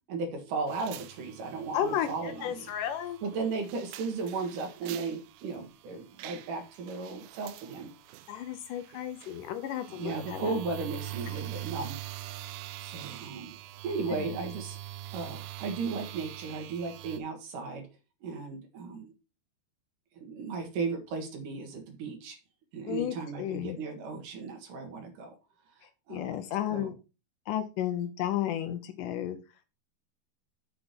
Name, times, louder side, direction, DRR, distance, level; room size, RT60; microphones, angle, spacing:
voice 1, 0.1-2.7 3.2-7.9 10.0-12.0 12.8-13.6 13.8-14.8 15.1-17.9 18.2-19.1 20.2-22.4 22.7-25.3 26.1-26.4 26.7-26.9, right 4 dB, 60° right, 4 dB, 3.0 m, -35 dB
sound 1, 0.7-17.2, right 14 dB, 80° right, 2.3 m, -44 dB
voice 2, 1.7-3.2 8.3-10.5 14.1-14.4 22.9-23.8 26.1-26.9 27.5-29.4, left 11 dB, 75° left, 10 dB, 1.9 m, -33 dB
6.7 x 6.0 x 5.2 m, 0.30 s
omnidirectional pair, 4.4 m